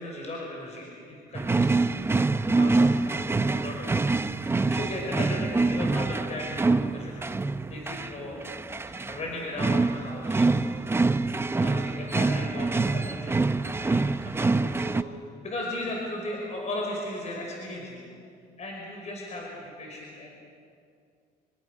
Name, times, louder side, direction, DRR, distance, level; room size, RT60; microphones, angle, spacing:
voice 1, 0.0-2.2 2.5-7.2 7.7-8.5 8.9-11.1 11.5-18.0 18.6-20.3, left 1 dB, 40° left, -1 dB, 5.4 m, -37 dB
sound 1, 1.4-15.0, right 3 dB, 15° right, 0.7 m, -25 dB
26.0 x 25.5 x 6.5 m, 2.3 s
cardioid pair, 110°, 17 cm